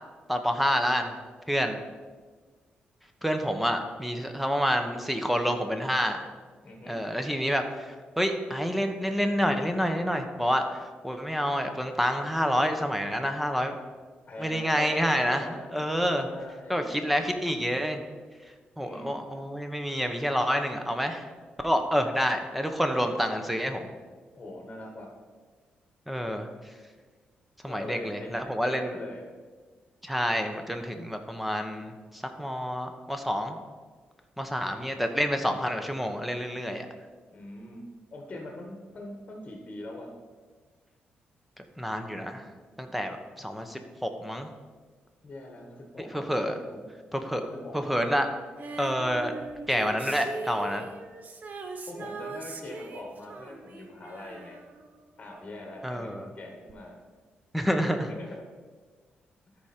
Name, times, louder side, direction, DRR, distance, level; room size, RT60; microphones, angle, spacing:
voice 1, 0.3-1.1 1.5-1.8 3.2-6.3 6.9-13.8 14.4-16.3 16.7-18.0 18.8-21.2 21.6-23.9 26.1-26.5 27.6-28.9 30.0-33.6 34.4-36.9 41.8-42.4 42.8-44.5 46.0-46.6 47.1-47.4 47.7-48.3 48.8-49.3 49.7-50.9 55.8-56.3 57.5-58.1, equal, 5° right, 6 dB, 0.9 m, -28 dB
voice 2, 6.6-7.0 14.2-15.7 16.1-17.2 18.8-19.1 24.4-25.1 27.7-28.3 28.6-29.2 34.5-34.8 37.3-37.8 38.1-40.1 45.2-46.9 47.3-47.9 51.9-54.6 55.2-57.0 58.1-58.5, left 1 dB, 30° left, 1 dB, 1.4 m, -42 dB
Female singing, 48.6-55.5 56.7-56.8, right 4 dB, 50° right, 0.9 m, -41 dB
13.0 x 5.0 x 4.4 m, 1.5 s
cardioid pair, 110°, 4 cm